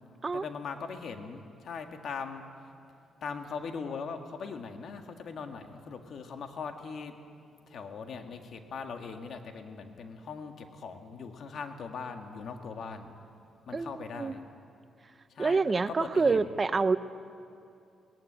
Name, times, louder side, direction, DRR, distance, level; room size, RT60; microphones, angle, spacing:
voice 1, 0.3-2.4 3.2-7.2 7.7-13.1 13.7-14.4 15.3-16.4, left 5 dB, 65° left, 5 dB, 1.8 m, -40 dB
voice 2, 13.7-14.4 15.4-17.0, right 4 dB, 30° right, 12 dB, 0.7 m, -27 dB
18.5 x 15.5 x 9.9 m, 2.5 s
cardioid pair, 95°, 0 cm